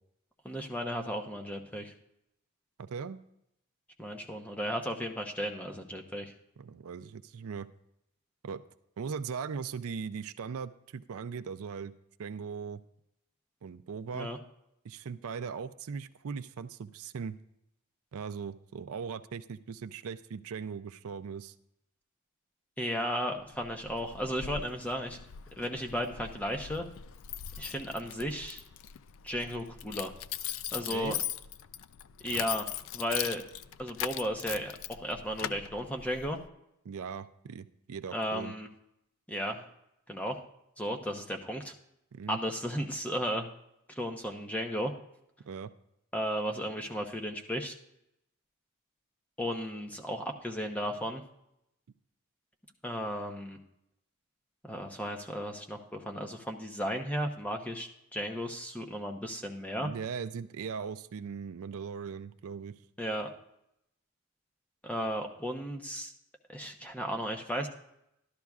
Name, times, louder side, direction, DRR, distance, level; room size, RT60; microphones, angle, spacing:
voice 1, 0.4-1.9 4.0-6.3 14.1-14.4 22.8-25.2 25.6-26.9 27.6-28.6 29.2-30.1 30.7-31.2 32.2-32.7 32.9-33.4 33.8-36.4 38.1-38.7 39.3-39.7 40.1-40.4 40.8-41.7 42.3-43.5 43.9-44.9 46.1-47.7 49.4-51.2 52.8-53.6 54.6-59.9 63.0-63.3 64.8-66.1 66.5-67.7, equal, 5° left, 4 dB, 0.8 m, -34 dB
voice 2, 2.8-3.2 6.6-7.7 8.4-8.6 9.0-11.9 12.2-12.8 13.6-14.3 14.8-17.4 18.1-21.5 30.9-31.2 36.8-38.5 42.1-42.4 45.4-45.7 59.8-62.7, right 6 dB, 70° right, 11 dB, 0.4 m, -39 dB
Keys jangling, 23.4-36.5, left 10 dB, 60° left, 0.3 m, -40 dB
13.0 x 12.0 x 2.4 m, 0.80 s
head